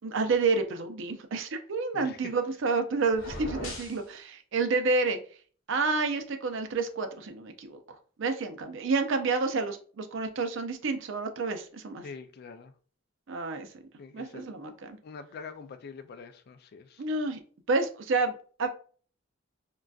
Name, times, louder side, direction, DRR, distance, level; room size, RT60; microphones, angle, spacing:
voice 1, 0.0-5.2 5.7-7.8 8.2-12.0 13.3-13.7 14.1-15.0 17.0-17.4 17.7-18.7, right 3 dB, 65° right, 0.5 m, -29 dB
sound 1, 3.1-4.0, left 1 dB, 70° left, 1.0 m, -38 dB
voice 2, 12.0-12.7 14.0-14.7 15.0-17.0, left 5 dB, 50° left, 0.3 m, -45 dB
3.8 x 2.3 x 2.3 m
head